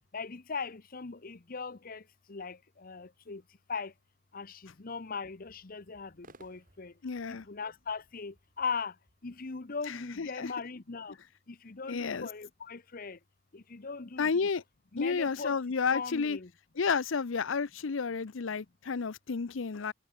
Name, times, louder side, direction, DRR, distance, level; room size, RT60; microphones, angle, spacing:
voice 1, 0.1-2.0 2.3-3.4 3.7-3.9 4.3-6.9 7.3-8.9 9.2-11.2 11.5-13.2 13.5-14.3 14.9-15.6 15.9-16.5, left 5 dB, 50° left, 0.9 m, -39 dB
sound 1, 5.0-9.9, right 2 dB, 45° right, 3.5 m, -63 dB
voice 2, 7.0-7.4 9.9-10.5 11.9-12.3 14.2-14.6 15.0-16.4 16.8-19.9, left 5 dB, 85° left, 0.7 m, -31 dB
head